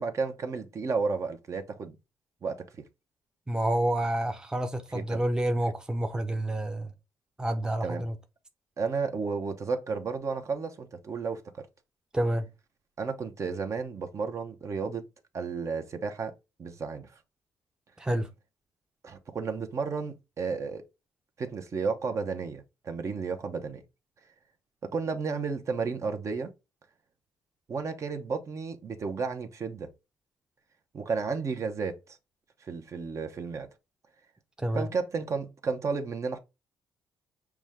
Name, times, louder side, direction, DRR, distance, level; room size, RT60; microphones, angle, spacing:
voice 1, 0.0-1.9 2.4-2.7 4.9-5.2 7.8-8.1 8.8-11.7 13.0-15.1 15.3-16.3 16.6-17.1 19.0-20.8 21.4-23.8 24.8-26.5 27.7-29.9 30.9-32.2 32.6-33.7 34.7-36.4, right 5 dB, 45° right, 0.8 m, -32 dB
voice 2, 3.5-6.9 7.4-8.1 12.1-12.5 18.0-18.3 34.6-34.9, right 1 dB, 10° right, 0.7 m, -28 dB
6.0 x 2.2 x 3.5 m
supercardioid pair, 75°, 7 cm